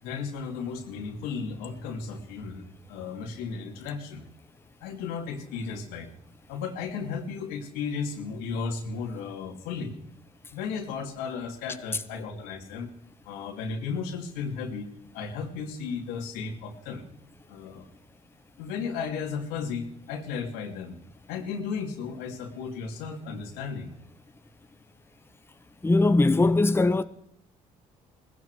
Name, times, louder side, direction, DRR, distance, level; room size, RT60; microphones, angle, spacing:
voice 1, 0.0-4.2 4.8-6.1 6.5-9.9 10.5-12.9 13.2-14.9 15.1-17.0 17.5-17.9 18.6-21.0 21.3-23.9, left 5 dB, 90° left, 2.5 m, -34 dB
voice 2, 25.8-27.0, left 2 dB, 15° left, 0.9 m, -20 dB
18.5 x 16.0 x 4.7 m
supercardioid pair, 75°, 15 cm